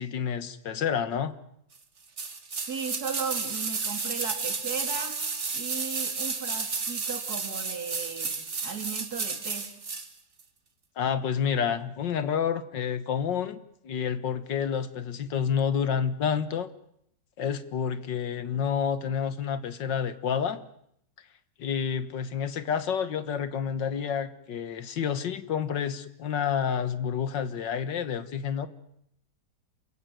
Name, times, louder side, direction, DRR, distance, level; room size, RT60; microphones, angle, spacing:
voice 1, 0.0-1.3 11.0-13.6 13.8-16.7 17.4-20.6 21.6-28.7, left 7 dB, 75° left, 13 dB, 2.0 m, -29 dB
sound 1, 2.2-10.1 10.4-10.5, right 4 dB, 40° right, 2.1 m, -32 dB
voice 2, 2.7-5.2 5.5-9.7, right 6 dB, 55° right, 6 dB, 3.4 m, -36 dB
28.0 x 16.0 x 9.3 m, 0.74 s
omnidirectional pair, 1.9 m